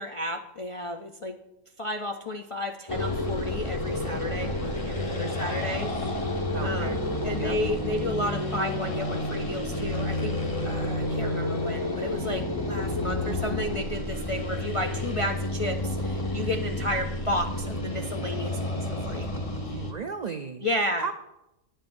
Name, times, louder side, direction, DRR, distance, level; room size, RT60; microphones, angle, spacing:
voice 1, 0.0-1.4 1.8-7.0 7.2-10.4 10.6-19.3 19.7-19.8 20.6-21.1, left 1 dB, 55° left, 2 dB, 0.3 m, -32 dB
sound 1, 2.9-19.9, left 1 dB, 25° left, 1.2 m, -30 dB
voice 2, 5.2-5.9 6.5-7.0 7.4-7.6 19.7-20.7 21.0-21.1, right 5 dB, 90° right, 7 dB, 0.3 m, -35 dB
18.5 x 9.9 x 2.6 m, 0.92 s
omnidirectional pair, 1.4 m